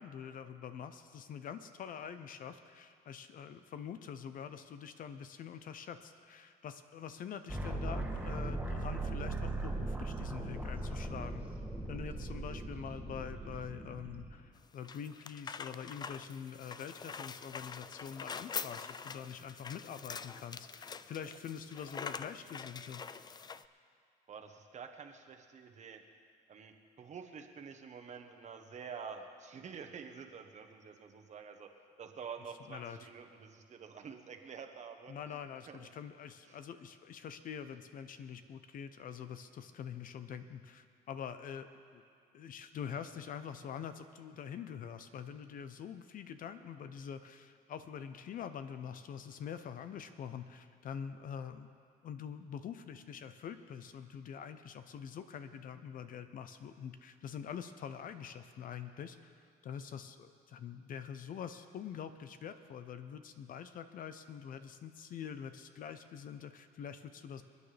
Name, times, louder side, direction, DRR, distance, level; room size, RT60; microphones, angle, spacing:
voice 1, 0.0-11.5 11.9-23.0 32.7-33.0 35.1-42.0 42.3-51.7 52.0-59.3 59.6-67.4, left 8 dB, 55° left, 10 dB, 0.7 m, -45 dB
sound 1, 7.5-14.3, right 2 dB, 10° right, 2.4 m, -39 dB
sound 2, 14.6-23.7, left 6 dB, 25° left, 0.4 m, -45 dB
voice 2, 24.3-26.0 26.5-31.7 32.0-35.8 36.5-36.6, right 6 dB, 45° right, 4 dB, 1.1 m, -48 dB
27.5 x 9.6 x 3.4 m, 2.2 s
cardioid pair, 110°, 17 cm